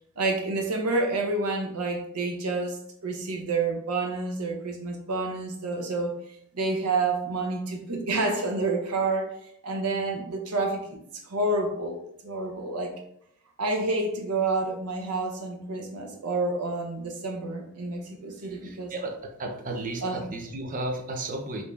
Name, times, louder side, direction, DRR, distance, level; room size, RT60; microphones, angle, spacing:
voice 1, 0.2-6.1 6.5-12.9 13.6-18.9 20.0-20.2, right 3 dB, 85° right, 3 dB, 0.7 m, -29 dB
voice 2, 18.4-19.1 19.4-21.6, right 2 dB, 35° right, 2 dB, 0.5 m, -34 dB
3.5 x 2.7 x 3.2 m, 0.71 s
head